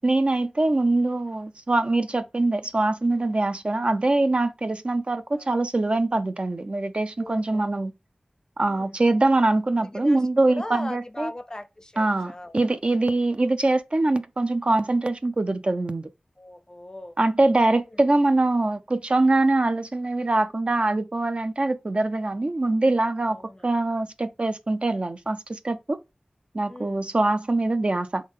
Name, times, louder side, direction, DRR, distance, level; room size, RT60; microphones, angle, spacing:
voice 1, 0.0-7.9 8.6-11.3 12.0-16.1 17.2-23.4 23.6-26.0 26.5-28.3, right 2 dB, 45° right, 0.4 m, -23 dB
voice 2, 7.2-7.9 8.6-9.0 9.8-12.5 16.4-17.2 17.9-18.0 23.2-23.7 26.7-27.1, left 1 dB, 25° left, 0.5 m, -39 dB
3.7 x 3.1 x 3.7 m
cardioid pair, 40°, 3 cm